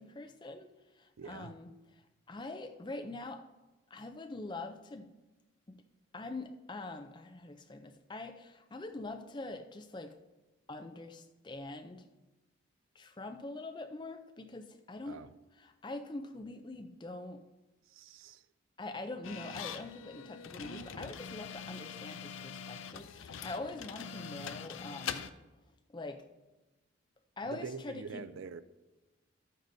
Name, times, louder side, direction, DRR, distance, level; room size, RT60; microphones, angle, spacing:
voice 1, 0.0-3.5 3.9-5.1 5.7-5.8 6.1-10.2 10.7-12.1 12.9-15.2 15.6-17.4 18.8-25.3 25.9-26.3 27.4-28.3, left 2 dB, 20° left, 0.5 m, -44 dB
voice 2, 1.2-1.5 15.1-15.3 17.9-18.5 27.4-28.6, right 5 dB, 80° right, 0.4 m, -45 dB
sound 1, 19.2-25.3, left 7 dB, 80° left, 0.5 m, -43 dB
12.0 x 9.1 x 2.7 m
head